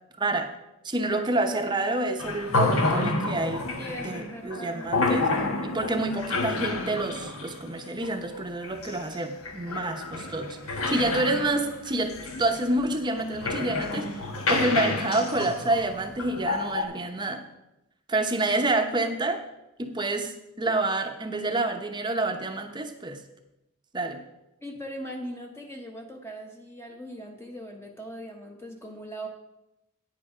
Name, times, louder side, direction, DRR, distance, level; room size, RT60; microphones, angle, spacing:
voice 1, 0.2-0.5 0.8-3.6 4.0-5.3 5.6-14.2 14.5-17.4 18.1-19.4 19.8-23.2 23.9-24.2, right 2 dB, 20° right, 5 dB, 0.7 m, -28 dB
sound 1, 2.2-16.8, left 2 dB, 75° left, 1.2 m, -29 dB
voice 2, 3.8-4.9 24.6-29.3, equal, 10° left, 2 dB, 0.9 m, -40 dB
9.5 x 7.7 x 4.9 m, 0.92 s
head